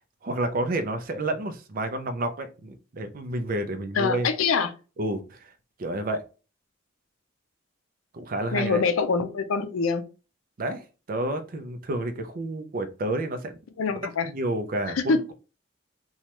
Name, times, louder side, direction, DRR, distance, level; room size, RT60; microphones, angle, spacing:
voice 1, 0.2-4.3 5.0-5.5 5.8-6.2 8.1-8.8 10.6-13.6 14.2-15.3, right 1 dB, 45° right, 0.4 m, -30 dB
voice 2, 3.9-4.7 8.5-10.0 13.8-14.3 14.9-15.2, left 4 dB, 85° left, 0.5 m, -24 dB
3.1 x 2.3 x 2.9 m
head